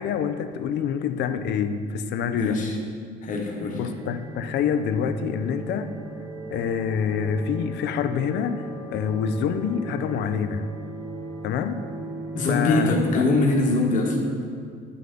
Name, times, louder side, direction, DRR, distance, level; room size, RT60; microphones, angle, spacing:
voice 1, 0.0-2.6 3.7-6.0 6.5-10.7 11.4-11.9 12.5-13.2, left 7 dB, 65° left, 10 dB, 0.5 m, -26 dB
voice 2, 2.3-2.8 3.2-3.8 12.3-14.2, left 2 dB, 40° left, 0 dB, 1.2 m, -22 dB
sound 1, 3.2-12.8, right 2 dB, 70° right, 0.9 m, -38 dB
9.3 x 5.7 x 3.8 m, 2.1 s
cardioid pair, 150°, 19 cm